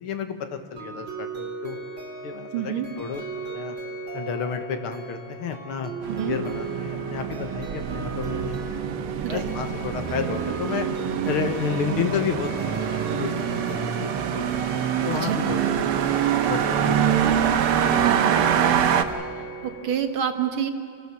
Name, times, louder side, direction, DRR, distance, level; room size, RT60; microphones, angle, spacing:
voice 1, 0.0-1.8 2.2-3.2 3.5-3.8 4.1-5.9 6.2-8.6 9.3-10.9 11.3-12.5 13.1-13.3 13.7-14.5 15.1-16.0 16.5-17.5 18.0-18.2, left 6 dB, 75° left, 7 dB, 2.3 m, -31 dB
sound 1, 0.8-19.9, right 4 dB, 30° right, 3.3 m, -36 dB
voice 2, 2.5-2.9 6.1-6.4 9.2-9.5 15.1-15.4 18.0-18.4 19.4-20.7, right 9 dB, 70° right, 7 dB, 2.2 m, -28 dB
sound 2, 6.0-19.0, right 8 dB, 90° right, 2.0 m, -25 dB
27.5 x 19.0 x 7.2 m, 2.6 s
omnidirectional pair, 2.4 m